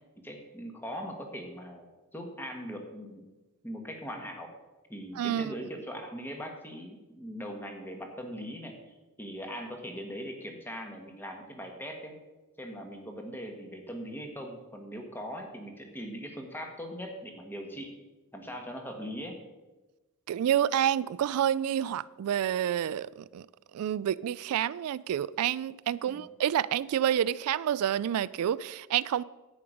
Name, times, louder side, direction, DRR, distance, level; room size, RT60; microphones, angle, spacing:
voice 1, 0.2-3.3 3.6-4.5 4.9-12.1 12.6-18.0 18.3-19.4 26.0-26.2, equal, 10° left, 1.3 m, -40 dB
voice 2, 5.2-5.5 20.3-23.4 23.7-29.2, right 10 dB, 85° right, 0.3 m, -28 dB
10.5 x 8.6 x 5.1 m
head